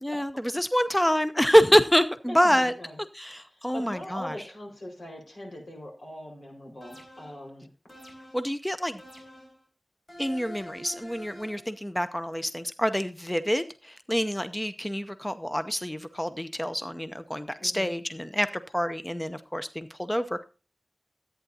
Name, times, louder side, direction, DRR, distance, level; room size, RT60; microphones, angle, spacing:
voice 1, 0.0-2.7 3.1-4.4 8.3-9.0 10.2-18.5 18.7-20.4, equal, 10° left, 10 dB, 0.6 m, -26 dB
voice 2, 2.3-3.0 3.7-7.7 17.6-17.9, left 1 dB, 75° left, 1 dB, 4.8 m, -41 dB
sound 1, 6.8-7.4 7.9-8.5 9.0-9.6 10.1-11.7, equal, 45° left, 4.4 m, -46 dB
13.5 x 9.0 x 2.7 m, 0.32 s
wide cardioid pair, 55°, 0 cm